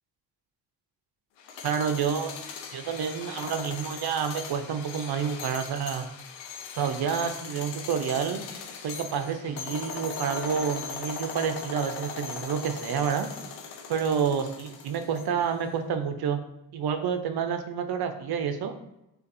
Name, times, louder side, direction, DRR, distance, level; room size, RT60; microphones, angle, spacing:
sound 1, 1.4-15.5, left 6 dB, 85° left, 0.6 m, -39 dB
voice 1, 1.6-2.3 2.7-6.1 6.8-8.4 8.8-13.3 13.9-16.4 16.7-18.7, right 7 dB, 60° right, 7 dB, 0.7 m, -29 dB
6.4 x 2.6 x 2.6 m, 0.91 s
hypercardioid pair, 45°, 43 cm